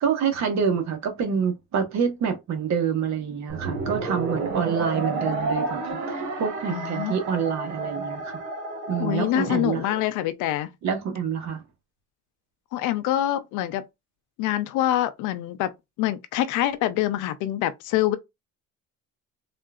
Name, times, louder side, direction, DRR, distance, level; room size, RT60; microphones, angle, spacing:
voice 1, 0.0-8.3 8.9-9.8 10.8-11.6, right 7 dB, 60° right, 1.2 m, -27 dB
sound 1, 3.5-10.0, right 3 dB, 80° right, 1.4 m, -31 dB
voice 2, 6.7-7.1 9.0-10.7 12.7-13.9 14.4-15.7 16.0-18.2, left 13 dB, 85° left, 0.6 m, -25 dB
3.6 x 2.5 x 2.4 m
cardioid pair, 115°, 30 cm